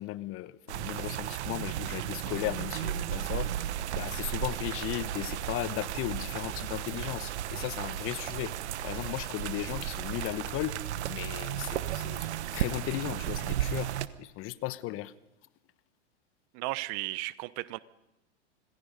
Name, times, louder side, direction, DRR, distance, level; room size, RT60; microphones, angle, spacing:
voice 1, 0.0-3.5 3.9-8.5 8.8-10.8 11.1-12.3 12.5-13.9 14.2-15.1, left 16 dB, 35° left, 1.0 m, -36 dB
sound 1, 0.7-14.1, right 12 dB, 65° right, 1.1 m, -34 dB
voice 2, 16.5-17.8, right 21 dB, 45° right, 0.9 m, -35 dB
26.5 x 19.5 x 5.3 m
hypercardioid pair, 100°, 36 cm